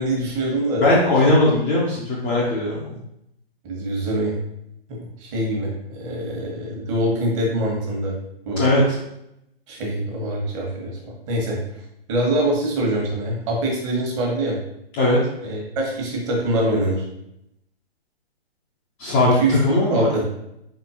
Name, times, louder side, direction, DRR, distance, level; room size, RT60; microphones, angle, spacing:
voice 1, 0.0-0.9 3.6-4.4 4.9-8.1 8.5-8.6 9.7-11.6 12.1-14.6 15.4-17.0 19.2-20.3, right 1 dB, 30° right, -1 dB, 1.3 m, -24 dB
voice 2, 0.8-3.0 8.6-8.9 15.0-15.2 19.0-20.1, left 2 dB, 15° left, -7 dB, 0.5 m, -19 dB
4.4 x 3.9 x 2.7 m, 0.80 s
figure-of-eight pair, 130°, 32 cm